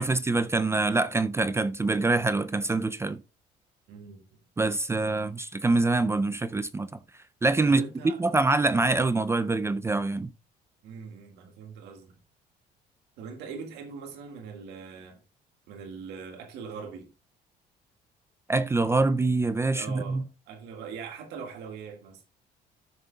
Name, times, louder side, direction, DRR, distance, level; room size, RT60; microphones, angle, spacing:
voice 1, 0.0-3.2 4.6-6.9 7.4-7.8 8.2-10.3 18.5-20.2, right 3 dB, 15° right, 0.4 m, -25 dB
voice 2, 3.9-4.2 7.6-8.2 10.8-12.2 13.2-15.2 15.7-17.1 19.7-22.2, right 5 dB, 85° right, 1.9 m, -41 dB
12.5 x 6.7 x 2.3 m
cardioid pair, 110°, 17 cm